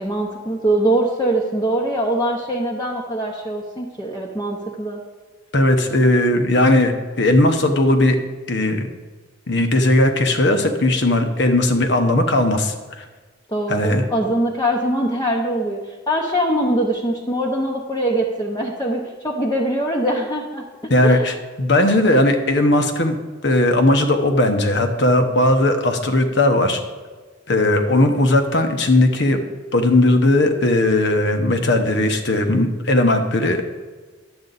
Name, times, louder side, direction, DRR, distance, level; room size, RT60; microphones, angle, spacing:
voice 1, 0.0-5.0 13.5-21.4, right 1 dB, 20° left, -3 dB, 0.8 m, -22 dB
voice 2, 5.5-6.9 7.2-8.2 8.5-8.9 9.5-13.0 13.7-14.0 20.9-23.1 23.4-26.8 27.5-29.4 29.7-33.6, left 1 dB, 65° left, 6 dB, 1.0 m, -17 dB
10.5 x 8.0 x 4.0 m, 1.4 s
head